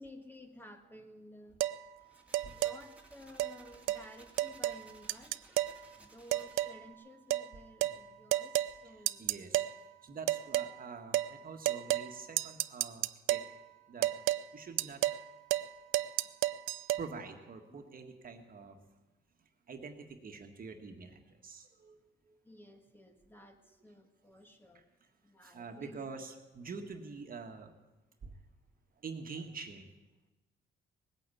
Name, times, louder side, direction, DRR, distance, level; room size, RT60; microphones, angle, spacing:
voice 1, 0.0-1.6 2.5-5.3 6.0-8.5 8.8-9.2 16.2-16.3 17.7-17.9 22.4-24.8 25.2-26.1, left 1 dB, 10° left, 5 dB, 1.8 m, -54 dB
sound 1, 1.6-1.8 2.3-2.8 3.4-3.5 3.9-4.0 4.4-4.8 5.1-5.8 6.3-6.8 7.3-7.5 7.8-8.0 8.3-8.7 9.1-9.7 10.3-10.7 11.1-11.3 11.6-12.1 12.4-13.5 14.0-14.4 14.8-15.2 15.5-15.7 15.9-17.0, right 15 dB, 80° right, 0.5 m, -31 dB
sound 2, 2.0-6.9, right 1 dB, 5° right, 2.5 m, -60 dB
voice 2, 9.0-9.7 10.0-13.4 13.9-15.0 17.0-18.8 19.7-22.4 25.4-27.7 28.2-28.3 29.0-29.9, right 4 dB, 45° right, 5 dB, 1.7 m, -46 dB
19.0 x 9.0 x 8.4 m, 1.1 s
cardioid pair, 90°, 20 cm